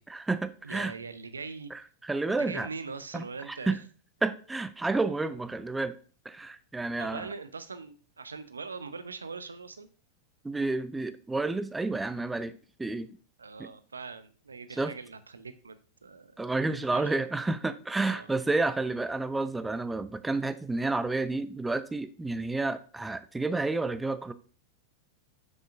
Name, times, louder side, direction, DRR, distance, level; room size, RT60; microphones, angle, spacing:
voice 1, 0.1-0.9 1.7-2.7 3.1-3.8 4.2-5.9 6.3-7.3 10.4-12.5 12.8-13.1 13.6-13.7 14.7-14.9 16.4-24.3, right 3 dB, 10° right, 12 dB, 0.5 m, -30 dB
voice 2, 0.6-1.7 2.4-3.8 7.0-9.9 13.4-16.4 16.9-17.2 18.0-18.3, right 4 dB, 75° right, 13 dB, 0.5 m, -41 dB
7.2 x 6.3 x 2.6 m, 0.39 s
figure-of-eight pair, 90°, 0 cm